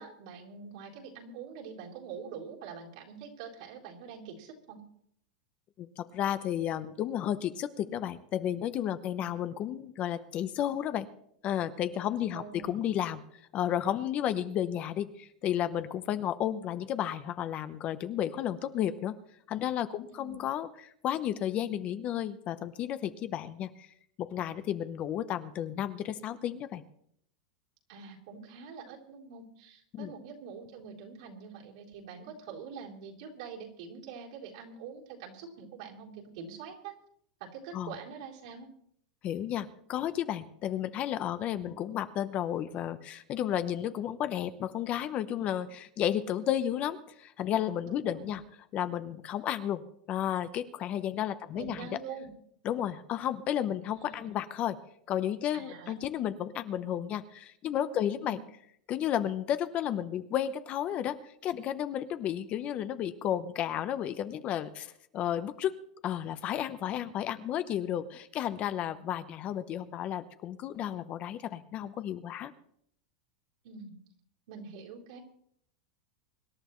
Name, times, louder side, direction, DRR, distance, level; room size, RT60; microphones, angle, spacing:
voice 1, 0.0-4.8 9.1-9.3 12.0-12.7 20.1-20.4 27.9-36.9 37.4-38.7 41.5-41.8 47.8-48.4 51.5-52.3 53.9-54.3 55.5-55.9 58.2-58.4 73.6-74.0 74.5-75.2, right 6 dB, 65° right, -2 dB, 3.8 m, -45 dB
voice 2, 5.8-11.1 11.4-13.2 13.5-19.1 19.5-23.9 24.2-26.8 29.9-30.1 37.7-37.9 39.2-48.4 48.7-49.8 50.1-51.9 52.6-54.8 55.1-58.4 58.9-65.7 66.0-72.5, left 10 dB, 35° left, 12 dB, 0.8 m, -32 dB
25.0 x 11.5 x 3.2 m, 0.70 s
supercardioid pair, 145°, 4 cm